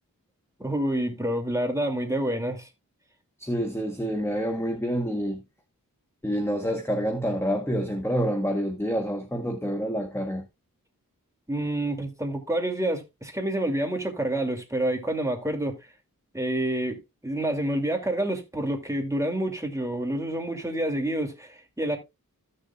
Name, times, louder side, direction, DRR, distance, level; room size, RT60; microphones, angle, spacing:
voice 1, 0.6-2.7 11.5-15.7 16.3-22.0, right 1 dB, 10° right, 2.6 m, -28 dB
voice 2, 3.4-5.4 6.2-10.5, equal, 5° left, 1.1 m, -27 dB
15.0 x 6.7 x 2.3 m
wide cardioid pair, 60°, 35 cm